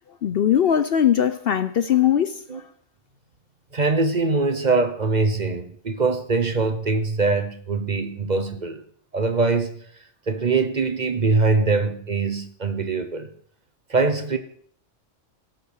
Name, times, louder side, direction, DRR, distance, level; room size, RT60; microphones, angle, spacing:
voice 1, 0.2-2.6, left 9 dB, 60° left, 0.7 m, -20 dB
voice 2, 3.7-8.8 9.1-9.8 10.3-13.3 13.9-14.4, right 3 dB, 40° right, 1.1 m, -22 dB
17.0 x 6.0 x 6.5 m
omnidirectional pair, 1.3 m